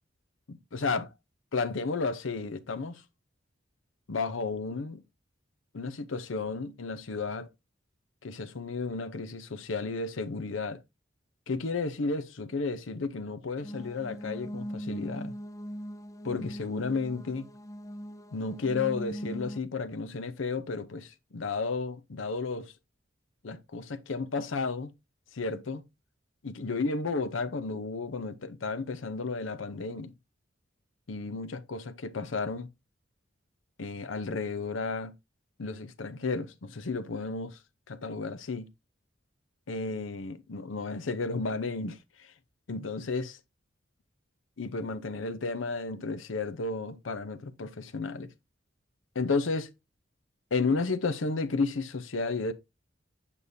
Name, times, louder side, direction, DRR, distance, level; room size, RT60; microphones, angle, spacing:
voice 1, 0.5-1.0 1.5-3.0 4.1-5.0 5.7-7.5 8.2-10.8 11.5-15.3 16.2-17.5 18.3-22.7 23.4-24.9 25.3-25.8 26.4-30.1 31.1-32.7 33.8-35.1 35.6-37.6 37.9-38.7 39.7-42.3 42.7-43.4 44.6-48.3 49.1-49.7 50.5-52.5, left 4 dB, 90° left, 0.7 m, -33 dB
sound 1, 13.6-19.6, equal, 15° left, 0.4 m, -40 dB
8.2 x 5.4 x 2.7 m
head